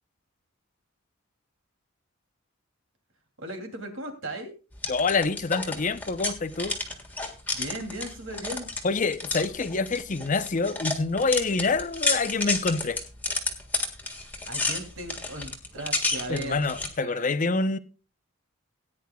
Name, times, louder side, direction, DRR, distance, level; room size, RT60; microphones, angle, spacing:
voice 1, 3.4-4.5 7.5-8.7 14.4-16.6 17.0-17.3, right 1 dB, 65° right, 2.7 m, -37 dB
sound 1, 4.7-16.9, left 3 dB, 10° left, 1.6 m, -32 dB
voice 2, 4.9-6.8 8.8-13.0 16.3-17.8, left 4 dB, 35° left, 0.6 m, -26 dB
18.5 x 9.8 x 2.3 m
head